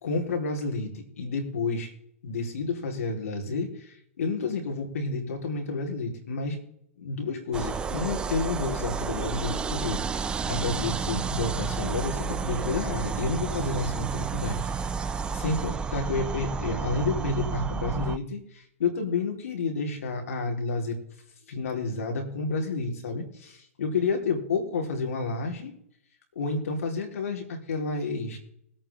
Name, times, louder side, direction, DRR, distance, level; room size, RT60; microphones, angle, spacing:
voice 1, 0.0-1.9 2.2-6.6 7.0-14.6 14.9-21.0 21.5-25.7 26.4-28.4, left 3 dB, 75° left, 2 dB, 4.1 m, -30 dB
sound 1, 7.5-18.2, right 5 dB, 10° right, 0.5 m, -31 dB
21.5 x 9.0 x 3.7 m, 0.71 s
hypercardioid pair, 140°, 8 cm